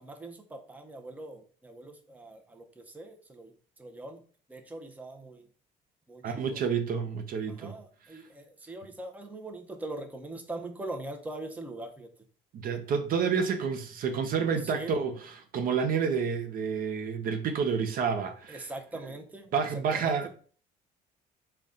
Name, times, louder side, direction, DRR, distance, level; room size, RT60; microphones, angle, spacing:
voice 1, 0.0-4.2 4.5-5.5 6.1-6.6 7.5-12.1 14.6-15.0 18.5-20.3, right 2 dB, 10° right, 0.6 m, -42 dB
voice 2, 6.2-7.7 12.5-15.2 15.5-18.7 19.5-20.3, right 6 dB, 60° right, 0.6 m, -29 dB
3.9 x 2.2 x 3.7 m
cardioid pair, 110°, 17 cm